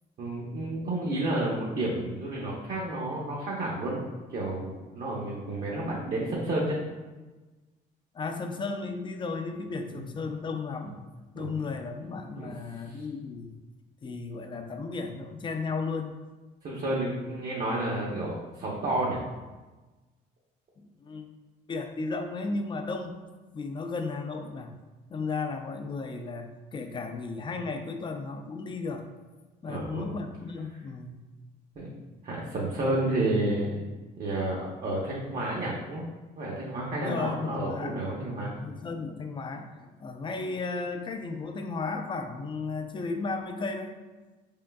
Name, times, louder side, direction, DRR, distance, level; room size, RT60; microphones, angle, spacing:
voice 1, 0.2-4.0 4.3-6.8 11.4-11.5 12.4-12.5 12.9-13.0 16.6-19.2 29.7-30.1 31.8-31.9 32.2-33.8 34.2-36.0 36.4-38.5, right 1 dB, 50° right, -4 dB, 0.9 m, -30 dB
voice 2, 8.1-10.9 11.3-13.5 14.0-16.2 20.8-21.3 21.7-23.1 23.5-24.7 25.1-29.0 29.6-31.2 37.0-38.3 38.6-43.9, left 4 dB, 30° left, 5 dB, 0.4 m, -34 dB
4.9 x 3.6 x 2.2 m, 1.2 s
cardioid pair, 110°, 17 cm